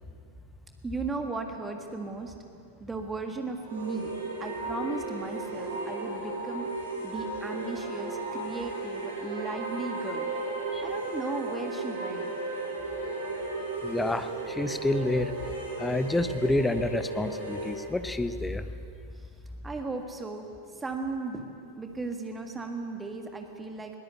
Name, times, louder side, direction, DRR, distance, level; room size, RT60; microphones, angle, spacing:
voice 1, 0.8-2.3 2.8-4.1 4.4-6.7 7.0-10.3 10.8-12.3 19.6-20.5 20.7-24.0, right 3 dB, 15° right, 4 dB, 1.8 m, -36 dB
sound 1, 3.6-17.8, right 2 dB, 65° right, 6.3 m, -35 dB
voice 2, 13.8-15.3 15.8-18.6, left 2 dB, 10° left, 10 dB, 1.1 m, -28 dB
21.5 x 19.0 x 8.3 m, 2.5 s
figure-of-eight pair, 90°, 0 cm